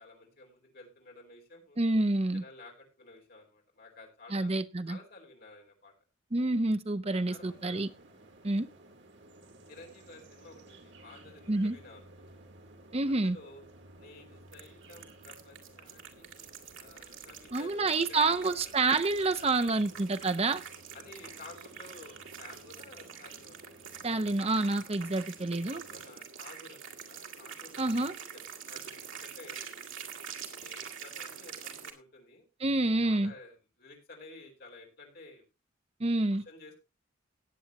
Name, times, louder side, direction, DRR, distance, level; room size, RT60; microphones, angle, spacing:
voice 1, 0.0-1.8 2.3-4.5 4.9-5.9 7.1-7.9 8.4-8.7 9.7-12.3 13.1-13.6 14.0-20.2 20.9-24.3 25.7-29.6 30.1-32.5 33.0-35.4 36.3-36.7, left 3 dB, 50° left, 4.8 m, -53 dB
voice 2, 1.8-2.4 4.3-5.0 6.3-7.9 8.4-8.7 11.5-11.8 12.9-13.4 17.5-20.6 24.0-25.8 27.8-28.1 32.6-33.3 36.0-36.4, right 2 dB, 30° right, 0.7 m, -28 dB
sound 1, 7.3-26.1, right 2 dB, 60° right, 1.9 m, -56 dB
sound 2, 14.5-31.9, right 7 dB, 80° right, 2.4 m, -46 dB
18.0 x 8.4 x 2.9 m
head